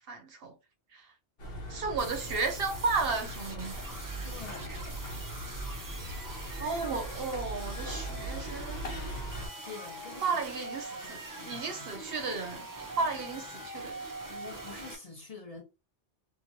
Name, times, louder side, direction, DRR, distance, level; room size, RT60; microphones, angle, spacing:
voice 1, 0.1-0.5 0.9-1.1 1.7-4.0 6.6-8.8 10.2-11.2 11.4-14.0, right 4 dB, 60° right, 0.8 m, -33 dB
sound 1, 1.4-9.5, right 1 dB, 60° left, 1.2 m, -40 dB
sound 2, 2.0-14.9, right 2 dB, 35° right, 0.3 m, -43 dB
voice 2, 4.2-4.7 9.6-10.4 10.9-12.0 14.3-15.6, left 4 dB, 40° left, 0.7 m, -47 dB
2.9 x 2.5 x 2.6 m
omnidirectional pair, 1.1 m